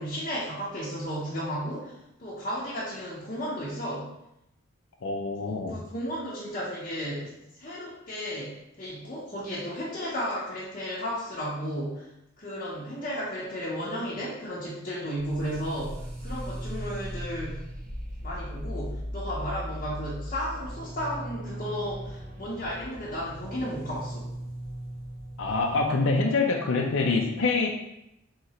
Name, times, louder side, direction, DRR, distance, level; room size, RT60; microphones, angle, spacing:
voice 1, 0.0-1.9 2.2-4.1 5.4-12.1 12.4-17.6 18.2-24.3, equal, 40° left, -8 dB, 0.9 m, -34 dB
voice 2, 5.0-5.8 25.4-27.7, left 3 dB, 70° left, 0 dB, 0.5 m, -25 dB
sound 1, 15.2-25.8, equal, 40° right, 0.8 m, -38 dB
3.8 x 2.9 x 4.2 m, 0.85 s
head